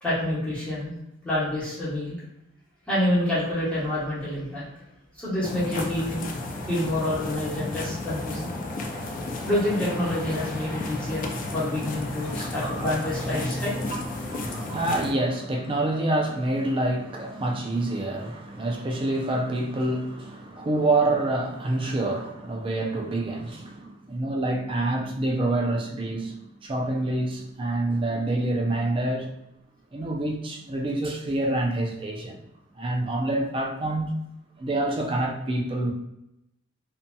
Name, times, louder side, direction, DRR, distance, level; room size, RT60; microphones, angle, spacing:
voice 1, 0.0-0.9 1.2-2.2 2.9-4.6 5.2-6.3 6.7-8.5 9.5-13.7 14.2-14.7, left 1 dB, 5° left, 1.0 m, -27 dB
sound 1, 5.4-15.1, left 2 dB, 45° left, 0.4 m, -33 dB
voice 2, 13.9-29.3 29.9-32.5 32.8-34.2 34.6-35.9, right 2 dB, 25° right, 0.4 m, -27 dB
2.7 x 2.6 x 2.2 m
head